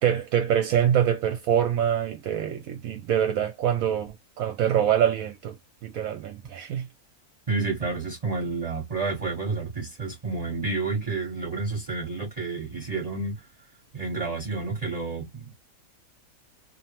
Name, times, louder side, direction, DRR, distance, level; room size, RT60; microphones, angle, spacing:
voice 1, 0.0-5.6 5.8-6.9, right 9 dB, 75° right, 1.0 m, -25 dB
voice 2, 7.5-13.4 13.9-15.5, right 3 dB, 30° right, 1.0 m, -30 dB
2.9 x 2.1 x 2.8 m
omnidirectional pair, 1.6 m